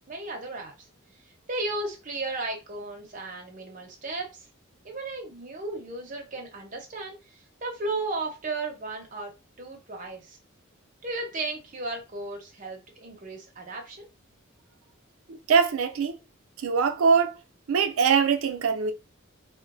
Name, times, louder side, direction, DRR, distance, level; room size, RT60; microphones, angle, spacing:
voice 1, 0.1-0.7 1.5-4.4 4.8-7.2 7.6-9.3 9.6-10.4 11.0-14.0, right 2 dB, 40° right, 0.7 m, -34 dB
voice 2, 15.3-16.2 16.6-17.4 17.7-18.9, right 6 dB, 80° right, 0.4 m, -23 dB
3.0 x 2.1 x 2.5 m
head